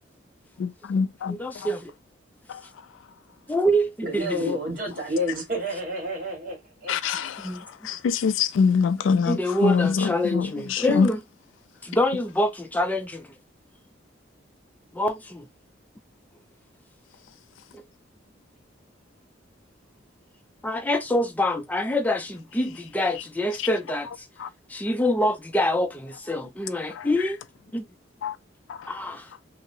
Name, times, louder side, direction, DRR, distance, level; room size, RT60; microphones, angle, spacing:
voice 1, 0.6-1.4 6.9-7.5 7.8-11.1 24.4-24.5 28.2-28.3, left 5 dB, 85° left, 0.3 m, -24 dB
voice 2, 1.3-1.9 3.5-4.6 7.4-7.6 9.2-11.2 11.8-13.3 14.9-15.5 17.7-17.8 20.6-24.3 24.7-27.4 27.7-27.8 28.9-29.3, left 1 dB, 10° left, 0.4 m, -26 dB
voice 3, 4.0-6.9, equal, 50° right, 1.3 m, -29 dB
2.7 x 2.0 x 2.6 m
head